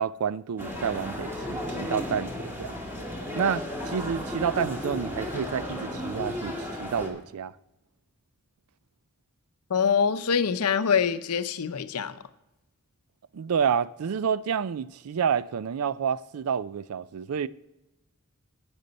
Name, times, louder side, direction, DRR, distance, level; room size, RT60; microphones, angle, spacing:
voice 1, 0.0-2.8 3.4-7.5 13.3-17.5, right 7 dB, 70° right, 0.4 m, -29 dB
sound 1, 0.6-7.1, left 1 dB, 10° right, 2.1 m, -34 dB
voice 2, 9.7-12.2, left 6 dB, 80° left, 0.6 m, -25 dB
12.0 x 8.9 x 4.0 m
head